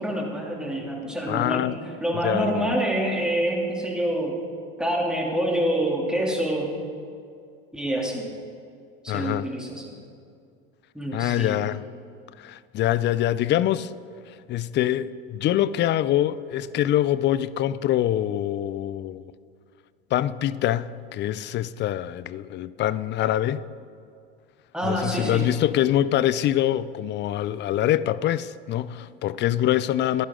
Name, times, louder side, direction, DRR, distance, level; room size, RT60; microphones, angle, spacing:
voice 1, 0.0-1.7 2.0-4.3 4.8-6.7 7.7-8.2 9.0-9.8 10.9-11.7 24.7-25.5, right 1 dB, ahead, 2.8 m, -26 dB
voice 2, 1.3-1.8 2.2-2.8 9.1-9.5 11.1-11.8 12.4-13.9 14.5-19.3 20.1-23.6 24.8-30.2, left 12 dB, 35° left, 0.5 m, -24 dB
15.0 x 11.0 x 3.8 m
hypercardioid pair, 90°, 30 cm